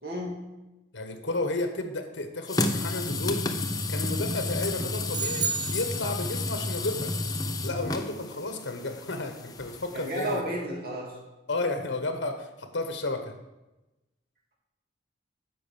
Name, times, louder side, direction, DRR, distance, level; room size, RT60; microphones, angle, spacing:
voice 1, 0.0-0.4 9.6-9.7 9.9-11.1, equal, 50° right, -2 dB, 2.8 m, -32 dB
voice 2, 0.9-3.5 3.9-7.1 7.6-10.4 11.5-13.3, left 2 dB, 75° left, 6 dB, 1.3 m, -32 dB
sound 1, 2.5-10.4, left 2 dB, 20° left, 0.6 m, -31 dB
sound 2, 5.1-6.6, right 6 dB, 25° right, 0.4 m, -32 dB
10.0 x 6.0 x 7.0 m, 1.0 s
head